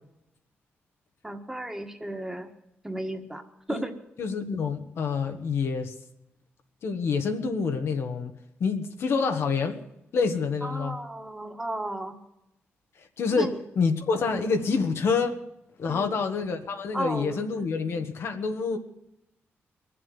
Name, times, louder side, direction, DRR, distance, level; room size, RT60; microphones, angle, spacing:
voice 1, 1.2-2.5 2.8-3.4 3.7-3.9 10.6-12.1 13.4-13.5 14.1-14.5 15.8-16.2 16.9-17.4, right 1 dB, 10° right, 5 dB, 1.7 m, -34 dB
voice 2, 4.2-5.9 6.8-8.3 8.6-9.8 10.1-11.0 13.0-15.4 15.8-18.8, left 5 dB, 70° left, 6 dB, 1.6 m, -27 dB
22.0 x 7.7 x 8.0 m, 0.86 s
wide cardioid pair, 120°, 4 cm